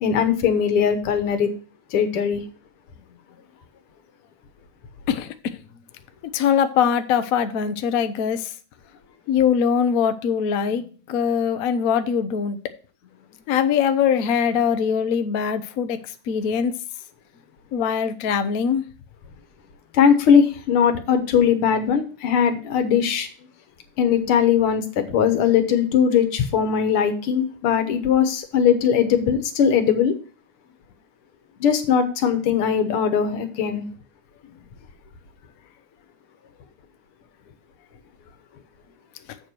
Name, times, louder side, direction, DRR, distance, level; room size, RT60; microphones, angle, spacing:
voice 1, 0.0-1.5 1.9-2.4 19.9-23.3 24.0-30.1 31.6-33.8, left 7 dB, 85° left, 2.0 m, -20 dB
voice 2, 5.1-5.6 6.3-8.5 9.3-12.6 13.5-16.0 16.3-16.7 17.7-18.8, left 7 dB, 65° left, 0.8 m, -22 dB
7.7 x 4.5 x 6.7 m
omnidirectional pair, 2.4 m